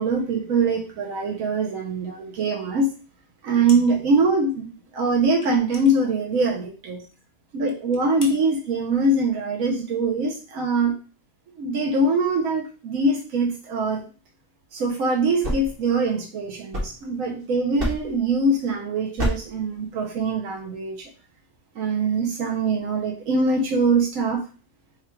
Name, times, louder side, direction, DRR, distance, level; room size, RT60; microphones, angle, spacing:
voice 1, 0.0-2.9 3.4-7.0 7.5-10.9 11.6-14.0 14.7-21.1 21.7-24.4, right 3 dB, 80° right, -1 dB, 1.2 m, -23 dB
sound 1, 3.7-4.2 4.5-4.6 5.4-6.8 7.1-7.3 7.7-8.4, left 2 dB, 40° left, 0.7 m, -42 dB
sound 2, 15.3-17.4 17.8-18.3 19.2-19.6, equal, 45° right, 1.4 m, -29 dB
3.6 x 2.3 x 4.3 m, 0.37 s
omnidirectional pair, 1.4 m